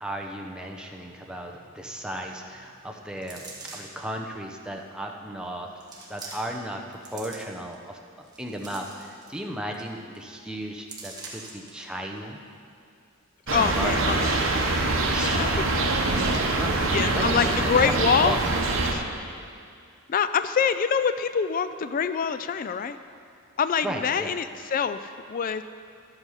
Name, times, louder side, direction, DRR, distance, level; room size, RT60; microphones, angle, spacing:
voice 1, 0.0-3.5 3.7-5.7 6.1-12.4 13.5-14.2 15.0-15.5 16.6-18.6 23.8-24.3, right 1 dB, 5° right, 1 dB, 0.8 m, -35 dB
sound 1, 3.2-4.1 4.8-4.9 5.8-6.6 6.9-7.7 8.2-9.4 9.7-9.9 10.2-10.4 10.9-11.7 12.2-12.3, right 3 dB, 20° right, 1.3 m, -43 dB
voice 2, 13.5-14.4 15.3-15.9 16.3-16.6 16.9-18.4 18.9-19.0 20.1-23.0 23.6-25.6, left 6 dB, 40° left, 11 dB, 0.3 m, -25 dB
sound 2, 13.5-18.9, right 2 dB, 65° right, 1.2 m, -24 dB
12.5 x 8.1 x 5.6 m, 2.3 s
head